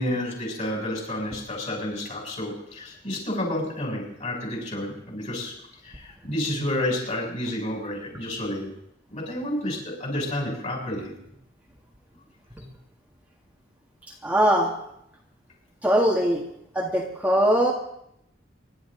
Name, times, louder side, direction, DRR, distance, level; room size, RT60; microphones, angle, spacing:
voice 1, 0.0-5.5 5.8-8.7 9.1-11.1, left 1 dB, 40° left, -1 dB, 7.2 m, -30 dB
voice 2, 14.2-14.7 15.8-16.4 16.8-17.7, equal, 10° right, -2 dB, 1.8 m, -21 dB
26.0 x 12.0 x 3.9 m, 0.75 s
head